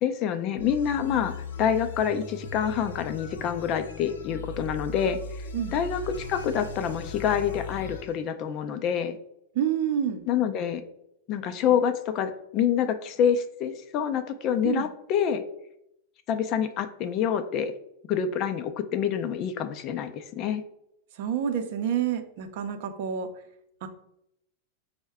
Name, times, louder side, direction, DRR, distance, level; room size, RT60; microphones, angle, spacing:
voice 1, 0.0-5.5 5.7-9.2 10.3-10.8 11.3-15.4 16.3-17.7 18.1-20.6, left 8 dB, 40° left, 8 dB, 0.4 m, -27 dB
sound 1, 0.6-8.1, left 3 dB, 90° left, 0.6 m, -38 dB
voice 2, 9.5-10.2 14.6-14.9 21.2-23.3 23.8-23.9, right 9 dB, 60° right, 8 dB, 0.5 m, -28 dB
5.4 x 2.1 x 3.5 m, 0.78 s
supercardioid pair, 130°, 0 cm